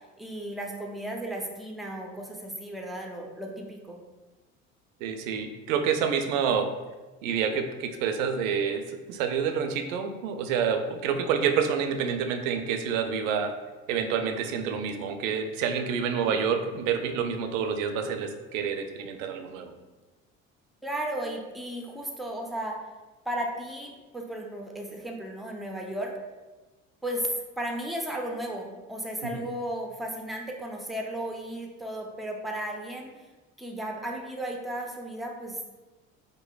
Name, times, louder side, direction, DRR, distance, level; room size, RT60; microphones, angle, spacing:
voice 1, 0.2-4.0 16.2-16.4 20.8-22.8 23.3-26.1 27.0-27.3 27.6-33.1 33.6-35.6, right 1 dB, ahead, 0 dB, 0.4 m, -35 dB
voice 2, 5.0-6.7 7.2-13.5 13.9-19.7 29.2-29.4, right 7 dB, 70° right, 6 dB, 0.5 m, -28 dB
5.1 x 2.1 x 2.3 m, 1.2 s
hypercardioid pair, 65°, 40 cm